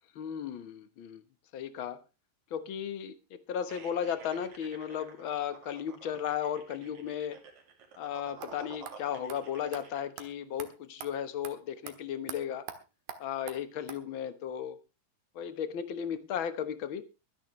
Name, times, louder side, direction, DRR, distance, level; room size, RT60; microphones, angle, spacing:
voice 1, 0.1-1.2 1.5-2.0 2.5-7.4 8.0-12.7 13.2-14.8 15.3-17.0, left 9 dB, 75° left, 11 dB, 1.1 m, -35 dB
sound 1, 3.7-10.0, right 5 dB, 55° right, 3.8 m, -52 dB
sound 2, 8.4-8.5 8.9-9.0 9.3-9.4 9.7-9.8 10.2-10.3 10.6-10.7 11.0-11.1 11.4-11.5 11.9-12.0 12.3-12.4 12.7-12.8 13.1-13.2 13.5-13.6 13.9-14.0, right 9 dB, 75° right, 3.1 m, -42 dB
23.5 x 10.0 x 3.2 m, 0.29 s
omnidirectional pair, 4.1 m